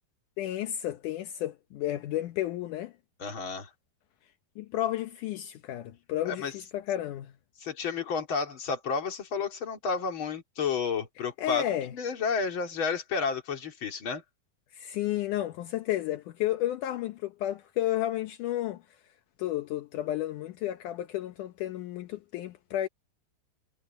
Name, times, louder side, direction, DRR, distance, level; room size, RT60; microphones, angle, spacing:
voice 1, 0.4-2.9 4.6-7.3 11.4-11.9 14.7-18.8 19.4-22.9, left 13 dB, 75° left, 1.9 m, -32 dB
voice 2, 3.2-3.7 6.2-6.5 7.6-11.6 11.9-14.2, left 5 dB, 35° left, 2.8 m, -31 dB
omnidirectional pair, 4.8 m